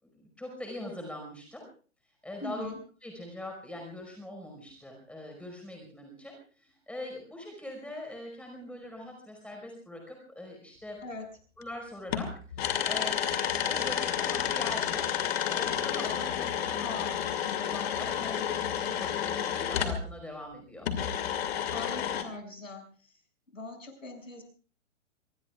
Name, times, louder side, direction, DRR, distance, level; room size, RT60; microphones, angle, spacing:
voice 1, 0.0-1.7 2.2-2.7 3.0-11.0 11.6-12.3 12.8-15.1 15.5-17.1 17.4-20.9, left 1 dB, 5° left, 2 dB, 5.1 m, -42 dB
voice 2, 2.4-2.8 11.0-11.2 16.8-17.2 21.7-22.8 23.5-24.4, left 2 dB, 85° left, 4 dB, 6.6 m, -41 dB
sound 1, 11.6-11.7 12.1-20.0 20.8-22.2, left 9 dB, 50° left, 2.6 m, -30 dB
25.0 x 22.5 x 2.4 m, 0.41 s
figure-of-eight pair, 115°, 39 cm